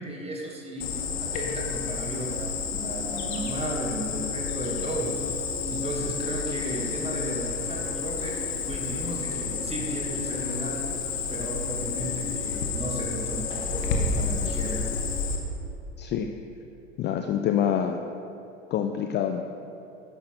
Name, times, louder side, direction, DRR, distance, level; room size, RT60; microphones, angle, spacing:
voice 1, 0.0-5.2 5.7-10.8 11.3-14.9, right 2 dB, 15° right, -1 dB, 2.1 m, -35 dB
Cricket, 0.8-15.4, left 5 dB, 60° left, 1.5 m, -30 dB
voice 2, 16.0-16.3 17.0-18.0 18.7-19.5, left 9 dB, 30° left, 5 dB, 0.5 m, -26 dB
12.0 x 10.5 x 3.4 m, 2.7 s
figure-of-eight pair, 75°, 37 cm